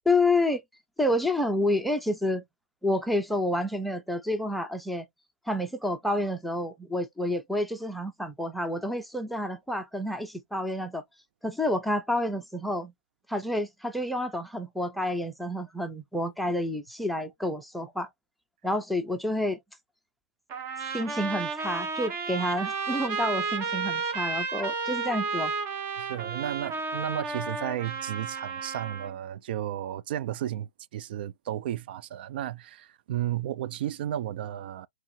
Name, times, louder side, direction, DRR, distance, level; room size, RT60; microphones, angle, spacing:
voice 1, 0.1-0.6 1.0-2.4 2.8-5.1 5.5-11.0 11.4-12.9 13.3-18.1 18.6-19.6 20.9-25.5, left 1 dB, ahead, 0.5 m, -29 dB
Trumpet, 20.5-29.2, right 4 dB, 30° right, 1.0 m, -32 dB
voice 2, 26.0-34.9, right 12 dB, 50° right, 0.3 m, -33 dB
4.5 x 3.0 x 2.7 m
hypercardioid pair, 140°, 7 cm